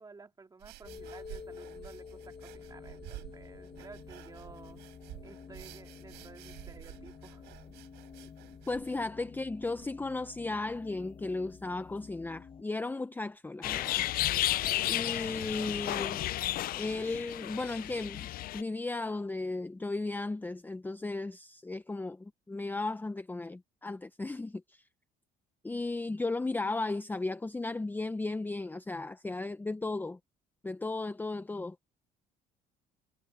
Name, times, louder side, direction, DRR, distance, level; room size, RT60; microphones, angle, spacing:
voice 1, 0.0-4.8 5.2-7.4, right 4 dB, 20° right, 2.4 m, -53 dB
sound 1, 0.6-9.9, right 19 dB, 90° right, 7.3 m, -51 dB
sound 2, 0.8-12.6, left 6 dB, 35° left, 0.9 m, -50 dB
voice 2, 8.7-14.0 14.9-16.3 16.8-18.3 18.5-24.8 25.6-30.2 30.6-31.8, left 3 dB, 10° left, 0.7 m, -35 dB
sound 3, 13.6-18.6, left 15 dB, 60° left, 0.4 m, -32 dB
cardioid pair, 110°, 17 cm